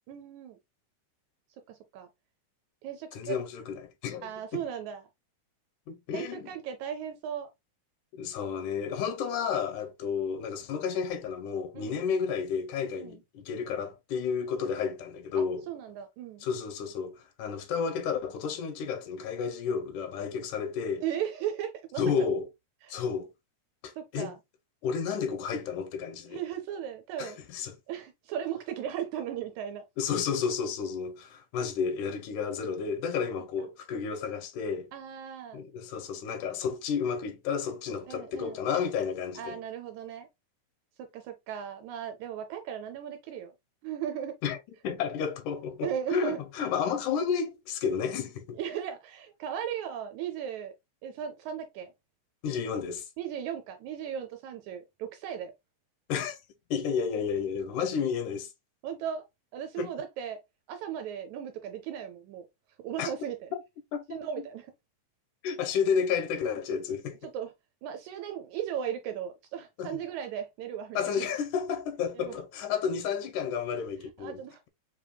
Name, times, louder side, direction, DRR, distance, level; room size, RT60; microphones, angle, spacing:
voice 1, 0.1-0.6 1.7-2.1 2.8-3.4 4.2-5.1 6.1-7.5 11.7-12.0 13.0-13.2 15.4-16.5 21.0-22.3 22.8-23.0 24.0-24.4 26.3-27.4 27.9-29.8 34.9-35.6 38.1-38.6 39.4-40.3 41.0-43.5 43.8-44.4 45.8-46.4 48.5-50.8 51.0-51.9 53.2-55.5 58.8-59.3 59.5-60.4 60.7-62.5 62.8-63.5 64.1-64.7 67.3-67.5 67.8-71.3 72.2-72.4 74.2-74.7, right 9 dB, 80° right, 1.9 m, -36 dB
voice 2, 3.1-4.6 5.9-6.5 8.1-15.6 16.4-21.0 22.0-22.5 22.9-23.3 23.8-24.4 24.8-26.4 27.2-27.7 30.0-34.9 35.5-39.6 44.4-44.6 44.8-48.6 52.4-53.1 56.1-56.4 56.7-58.5 59.8-59.9 63.0-63.1 63.5-63.6 63.9-64.2 65.4-67.2 69.8-70.0 71.0-74.4, left 6 dB, 85° left, 2.1 m, -31 dB
5.3 x 2.9 x 2.2 m
omnidirectional pair, 3.5 m